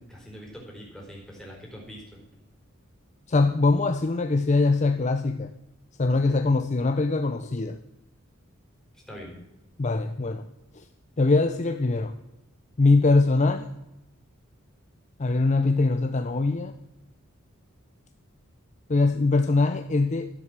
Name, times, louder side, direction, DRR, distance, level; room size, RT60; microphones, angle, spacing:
voice 1, 0.0-2.2 9.1-9.4, equal, 5° left, -2 dB, 4.3 m, -43 dB
voice 2, 3.3-5.5 6.0-7.8 9.8-10.4 10.7-10.8 11.2-12.1 12.8-13.6 15.2-16.7 18.9-20.3, left 3 dB, 35° left, 8 dB, 0.6 m, -22 dB
13.0 x 7.7 x 7.5 m, 0.88 s
head